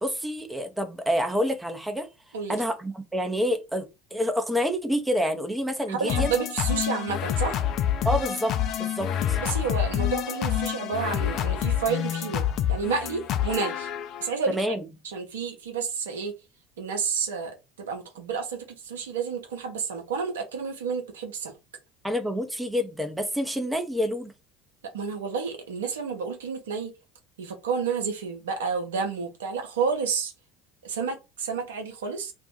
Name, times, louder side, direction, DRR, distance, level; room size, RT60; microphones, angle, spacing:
voice 1, 0.0-2.1 2.5-6.3 8.0-9.4 14.5-14.9 22.0-24.3, equal, 5° right, 0.6 m, -28 dB
voice 2, 5.9-7.6 9.4-13.9 14.2-14.7 15.0-16.3 16.8-21.5 24.9-26.9 27.4-30.3 30.8-32.3, right 5 dB, 75° right, 0.7 m, -30 dB
sound 1, 6.1-14.3, left 10 dB, 50° left, 0.4 m, -27 dB
2.5 x 2.3 x 3.7 m
figure-of-eight pair, 65°, 0 cm